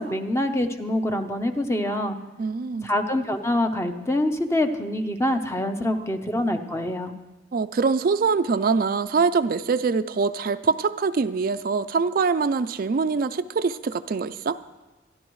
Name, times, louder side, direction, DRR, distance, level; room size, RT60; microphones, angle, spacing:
voice 1, 0.0-2.2 2.8-7.1, left 1 dB, 15° left, 7 dB, 0.7 m, -25 dB
voice 2, 2.4-2.9 7.5-14.6, right 4 dB, 50° right, 11 dB, 0.4 m, -24 dB
26.0 x 11.0 x 3.1 m, 1.2 s
head